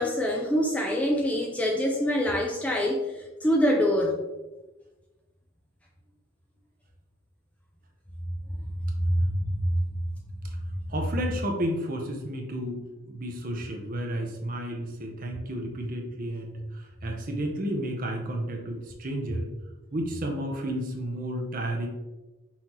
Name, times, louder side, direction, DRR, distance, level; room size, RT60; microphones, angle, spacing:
voice 1, 0.0-4.2 8.8-9.8, equal, 5° left, -1 dB, 0.3 m, -25 dB
voice 2, 10.9-19.5 19.9-21.9, right 1 dB, 40° right, 2 dB, 0.7 m, -32 dB
5.6 x 2.8 x 3.0 m, 1.1 s
head